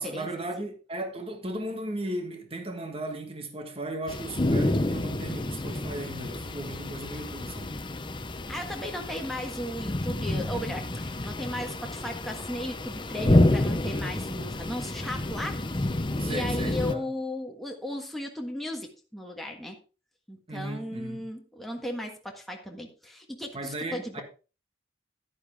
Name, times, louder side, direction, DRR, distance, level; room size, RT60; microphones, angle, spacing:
voice 1, 0.0-7.8 16.2-17.1 20.5-21.2 23.5-24.2, right 1 dB, 30° right, 1.6 m, -36 dB
sound 1, 4.1-16.9, left 1 dB, 25° left, 0.7 m, -29 dB
voice 2, 8.5-15.6 16.0-19.8 20.3-24.2, left 1 dB, ahead, 1.6 m, -36 dB
11.0 x 9.9 x 3.5 m
head